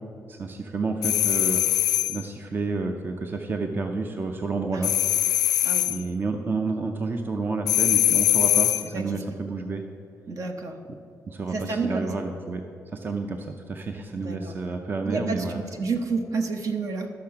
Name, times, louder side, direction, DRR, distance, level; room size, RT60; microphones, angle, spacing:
voice 1, 0.3-1.6 2.1-4.9 5.8-9.8 11.3-12.6 12.9-15.6, right 3 dB, 30° right, 5 dB, 0.6 m, -30 dB
sound 1, 1.0-2.2 4.8-6.0 7.7-8.9, left 12 dB, 80° left, 0.3 m, -22 dB
voice 2, 8.9-9.4 10.3-10.8 11.5-12.3 14.2-14.6 15.0-17.1, right 4 dB, 60° right, 5 dB, 1.1 m, -30 dB
12.0 x 6.6 x 5.7 m, 2.7 s
cardioid pair, 130°, 6 cm